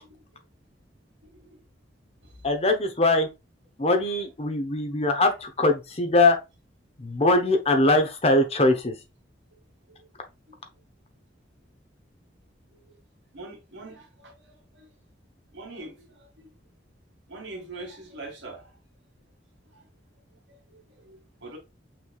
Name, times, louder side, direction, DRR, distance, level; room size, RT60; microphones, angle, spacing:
voice 1, 2.4-3.3 3.8-6.4 7.0-8.9, left 2 dB, 35° left, 0.8 m, -22 dB
voice 2, 13.3-14.3 14.8-14.9 15.5-15.9 16.4-16.5 17.3-18.6 21.0-21.6, right 2 dB, 85° right, 2.1 m, -41 dB
5.9 x 3.2 x 2.4 m
head